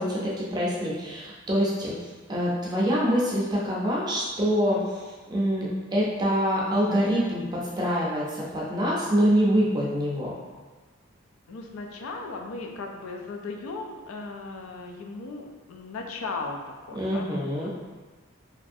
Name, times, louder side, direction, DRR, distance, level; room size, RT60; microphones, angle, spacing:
voice 1, 0.0-10.3 16.9-17.7, equal, 20° right, -5 dB, 0.4 m, -25 dB
voice 2, 11.5-17.7, left 3 dB, 85° left, 3 dB, 0.4 m, -37 dB
3.1 x 2.5 x 2.5 m, 1.3 s
head